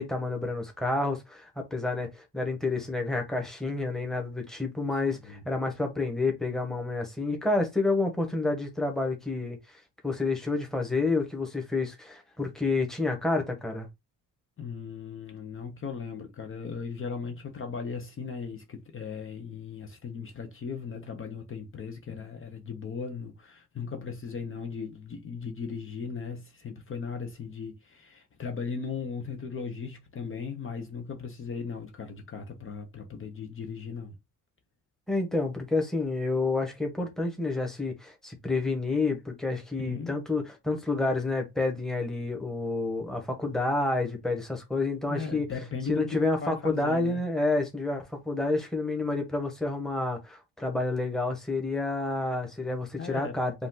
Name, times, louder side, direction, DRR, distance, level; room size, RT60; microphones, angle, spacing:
voice 1, 0.0-9.6 10.0-13.9 35.1-45.5 45.9-53.5, left 3 dB, ahead, 1.3 m, -29 dB
voice 2, 4.9-5.4 14.6-34.1 39.8-40.2 45.1-46.1 46.4-47.2 53.0-53.4, left 5 dB, 35° left, 0.9 m, -37 dB
5.0 x 2.6 x 3.9 m
cardioid pair, 135°, 34 cm